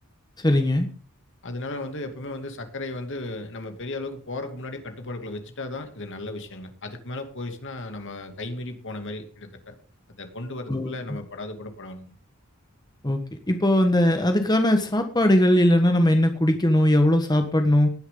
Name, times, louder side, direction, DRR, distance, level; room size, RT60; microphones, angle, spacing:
voice 1, 0.4-0.9 10.7-10.9 13.0-13.2 13.5-17.9, left 1 dB, 20° left, 6 dB, 1.3 m, -20 dB
voice 2, 1.4-9.7 10.2-12.1, left 2 dB, 60° left, 6 dB, 2.6 m, -35 dB
18.5 x 10.5 x 3.9 m, 0.38 s
head